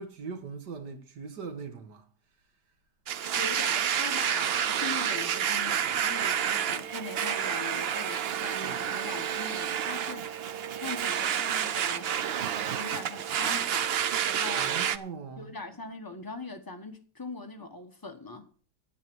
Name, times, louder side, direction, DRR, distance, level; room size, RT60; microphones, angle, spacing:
voice 1, 0.0-2.1 8.6-8.8 14.6-15.5, right 5 dB, 70° right, 2.0 m, -40 dB
Domestic sounds home sounds, 3.1-15.0, right 9 dB, 90° right, 0.5 m, -29 dB
voice 2, 3.3-10.3 10.8-12.1 12.7-13.9 14.3-14.8 15.4-18.5, left 3 dB, 15° left, 1.2 m, -41 dB
9.9 x 8.4 x 6.3 m
omnidirectional pair, 1.9 m